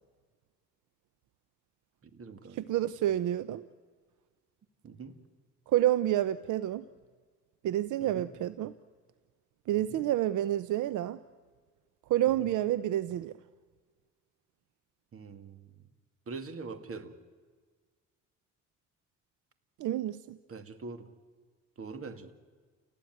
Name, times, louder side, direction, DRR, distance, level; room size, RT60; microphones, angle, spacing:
voice 1, 2.0-2.8 4.8-5.2 8.0-8.3 9.7-10.0 12.4-12.5 15.1-15.7 16.3-17.1 20.5-21.1 21.8-22.3, right 4 dB, 45° right, 10 dB, 2.3 m, -43 dB
voice 2, 2.6-3.7 5.7-6.8 7.6-8.7 9.7-11.2 12.1-13.3 19.8-20.4, right 13 dB, 80° right, 16 dB, 0.7 m, -29 dB
29.5 x 18.5 x 9.5 m, 1.5 s
cardioid pair, 90°, 30 cm